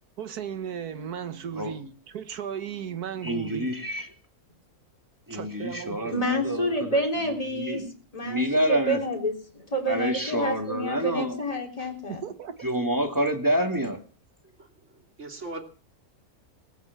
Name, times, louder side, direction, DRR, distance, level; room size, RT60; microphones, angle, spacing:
voice 1, 0.2-3.7 5.3-6.2 12.1-12.6, right 8 dB, 85° right, 1.7 m, -36 dB
voice 2, 3.2-4.1 5.3-7.0 7.6-7.9 8.2-9.0 9.9-11.4 12.6-14.0, right 1 dB, 15° right, 2.2 m, -27 dB
voice 3, 6.1-7.8 8.1-12.2, equal, 25° left, 3.6 m, -28 dB
voice 4, 14.6-15.6, right 2 dB, 50° right, 3.0 m, -41 dB
19.5 x 9.0 x 7.2 m
omnidirectional pair, 1.6 m